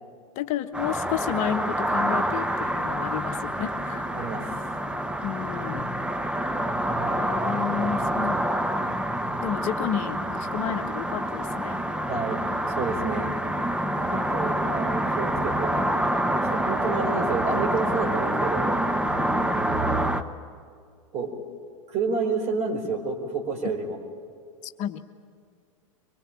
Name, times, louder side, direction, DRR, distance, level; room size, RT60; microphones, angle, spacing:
voice 1, 0.3-4.1 5.2-5.9 7.0-9.0 9.4-11.8 13.9-14.8 19.1-19.7 24.6-25.0, left 10 dB, 45° left, 7 dB, 1.2 m, -32 dB
sound 1, 0.7-20.2, right 1 dB, 5° right, 1.1 m, -27 dB
voice 2, 4.1-4.7 6.9-7.9 12.1-12.4 12.7-13.3 14.3-15.9 16.2-18.8 19.3-20.1 21.1-21.3 21.9-24.0, right 4 dB, 40° right, 3 dB, 4.6 m, -30 dB
24.0 x 22.0 x 8.9 m, 2.2 s
hypercardioid pair, 95°, 17 cm